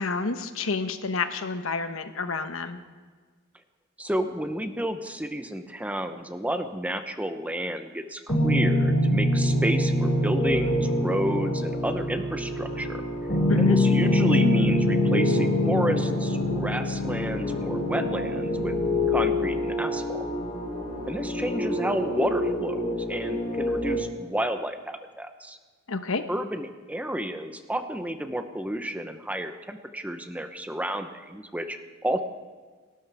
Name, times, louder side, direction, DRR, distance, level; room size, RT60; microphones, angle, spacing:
voice 1, 0.0-2.8 13.5-13.8 25.9-26.2, left 4 dB, 85° left, 8 dB, 1.1 m, -29 dB
voice 2, 4.0-13.0 13.6-18.7 19.1-20.2 21.1-25.6 26.3-32.2, right 1 dB, 5° right, 7 dB, 0.8 m, -31 dB
sound 1, 8.3-23.9, left 1 dB, 45° left, 5.7 m, -25 dB
29.5 x 12.5 x 3.5 m, 1.5 s
head